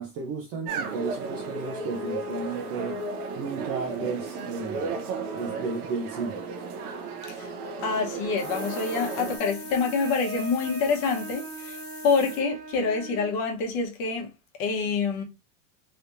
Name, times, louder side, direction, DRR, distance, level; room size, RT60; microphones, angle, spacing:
voice 1, 0.0-3.0 3.4-5.0 5.3-6.4, right 4 dB, 35° right, 0.4 m, -33 dB
sound 1, 0.7-9.4, right 3 dB, 90° right, 0.9 m, -34 dB
voice 2, 7.8-14.3 14.6-15.2, left 5 dB, 45° left, 1.0 m, -27 dB
sound 2, 8.4-12.4, left 7 dB, 85° left, 1.2 m, -44 dB
sound 3, 8.4-13.4, right 3 dB, 65° right, 1.9 m, -40 dB
3.4 x 2.8 x 2.5 m
supercardioid pair, 155°, 44 cm